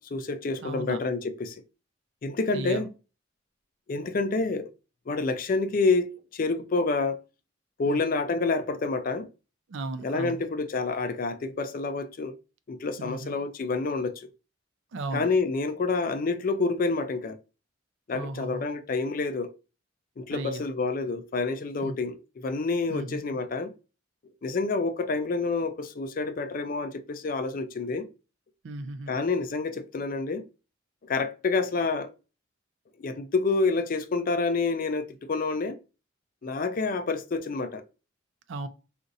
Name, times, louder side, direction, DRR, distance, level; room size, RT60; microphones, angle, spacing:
voice 1, 0.0-1.6 2.2-2.9 3.9-4.7 5.1-7.2 7.8-9.3 10.0-12.4 12.7-14.3 15.1-17.4 18.1-19.5 20.2-23.7 24.4-28.1 29.1-30.4 31.0-32.1 33.0-35.8 36.4-37.8, left 3 dB, 45° left, 0.4 m, -28 dB
voice 2, 0.6-1.0 2.5-2.8 7.9-8.0 9.7-10.4 13.0-13.3 14.9-15.3 18.1-18.6 20.3-20.6 21.8-22.0 22.9-23.2 28.6-29.1 38.5-38.7, right 2 dB, 65° right, 0.4 m, -35 dB
2.6 x 2.5 x 4.0 m
head